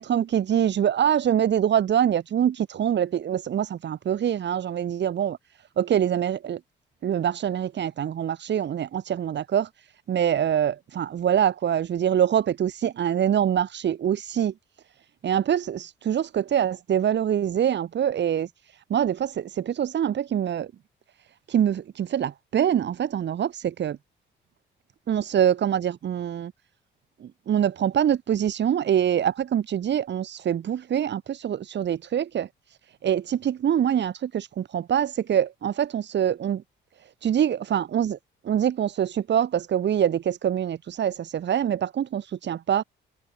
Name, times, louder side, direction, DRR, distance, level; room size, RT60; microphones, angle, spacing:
voice 1, 0.0-5.4 5.8-6.6 7.0-14.5 15.2-20.7 21.5-24.0 25.1-26.5 27.2-32.5 33.0-36.6 37.2-38.2 38.4-42.8, right 9 dB, 60° right, 4.8 m, -24 dB
cardioid pair, 90°, 20 cm